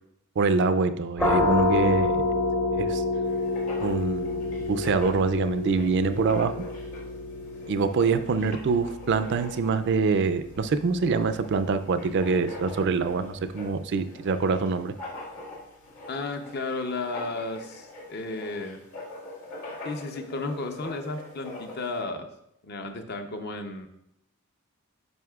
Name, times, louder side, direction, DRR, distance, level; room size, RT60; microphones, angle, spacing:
voice 1, 0.4-2.2 2.7-3.0 3.8-6.5 7.7-14.9, right 4 dB, 55° right, 11 dB, 0.4 m, -25 dB
sound 1, 1.2-12.7, left 2 dB, 10° left, 0.6 m, -29 dB
Writing, 3.2-22.0, left 1 dB, 80° left, 2.1 m, -43 dB
voice 2, 16.1-18.8 19.8-22.3 22.6-23.9, left 3 dB, 50° left, 6 dB, 0.7 m, -33 dB
9.3 x 5.6 x 2.4 m, 0.79 s
head